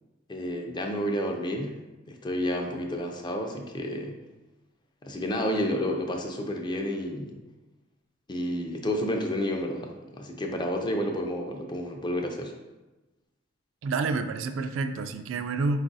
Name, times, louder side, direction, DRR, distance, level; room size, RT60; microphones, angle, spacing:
voice 1, 0.3-1.8 2.1-4.2 5.0-7.4 8.3-12.5, equal, 25° left, 3 dB, 0.4 m, -30 dB
voice 2, 13.8-15.8, right 3 dB, 70° right, 9 dB, 0.3 m, -28 dB
4.6 x 2.4 x 3.9 m, 1.1 s
head